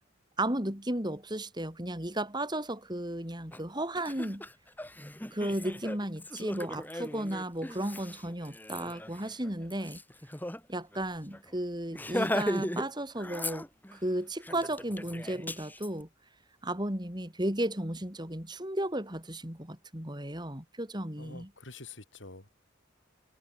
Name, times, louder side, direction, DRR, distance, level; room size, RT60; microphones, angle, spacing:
voice 1, 0.4-4.5 5.3-10.0 10.7-16.1 16.6-21.5, right 1 dB, 20° right, 4.4 m, -34 dB
Laughter, 3.5-3.6 4.0-10.6 10.9-11.0 11.3-11.5 11.9-12.9 13.2-14.0 14.4-15.9, left 1 dB, 10° left, 5.0 m, -37 dB
voice 2, 21.2-22.5, left 3 dB, 70° left, 4.0 m, -47 dB
head